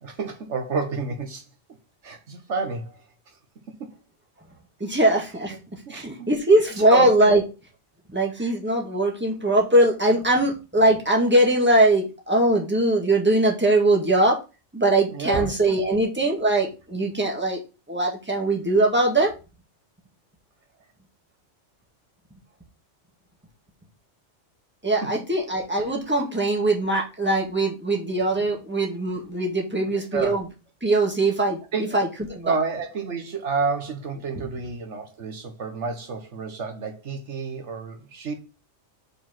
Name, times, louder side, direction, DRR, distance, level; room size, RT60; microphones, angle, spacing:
voice 1, 0.0-1.4 2.0-3.0 3.8-3.9 5.9-6.0 6.9-7.4 8.4-8.5 15.1-15.8 29.8-30.3 31.7-32.0 32.4-38.3, right 4 dB, 75° right, 1.5 m, -30 dB
voice 2, 4.8-7.4 8.1-14.4 14.7-17.6 17.9-19.3 24.8-30.5 30.8-31.6 31.9-32.6, right 1 dB, 10° right, 1.7 m, -21 dB
5.3 x 4.6 x 5.8 m
omnidirectional pair, 1.2 m